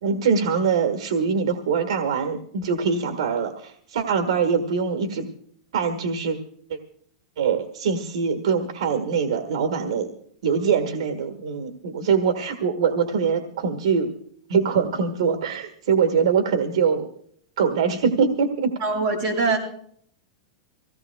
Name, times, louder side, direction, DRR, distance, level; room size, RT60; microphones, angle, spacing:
voice 1, 0.0-5.3 5.7-6.4 6.7-6.8 7.4-10.1 10.4-14.1 14.5-17.1 17.6-18.7, right 6 dB, 75° right, 7 dB, 1.5 m, -23 dB
voice 2, 18.8-19.6, right 3 dB, 25° right, -2 dB, 5.1 m, -22 dB
25.0 x 17.0 x 2.3 m, 0.64 s
supercardioid pair, 175°, 3 cm